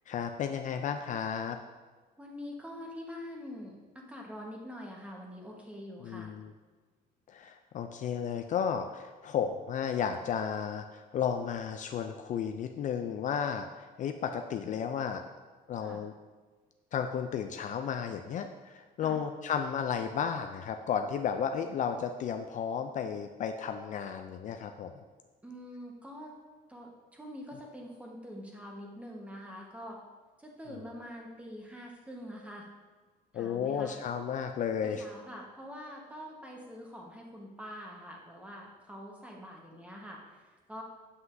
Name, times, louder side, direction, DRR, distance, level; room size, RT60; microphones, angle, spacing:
voice 1, 0.1-1.6 6.0-6.5 7.3-13.7 14.0-15.2 15.7-16.1 16.9-24.9 33.3-35.0, left 7 dB, 50° left, 6 dB, 0.4 m, -33 dB
voice 2, 2.2-6.3 15.8-16.0 19.0-19.2 25.4-26.3 26.7-30.0 30.4-32.7 33.3-34.0 34.8-40.8, equal, 10° right, -1 dB, 1.2 m, -45 dB
7.9 x 5.6 x 2.6 m, 1.4 s
cardioid pair, 110°, 17 cm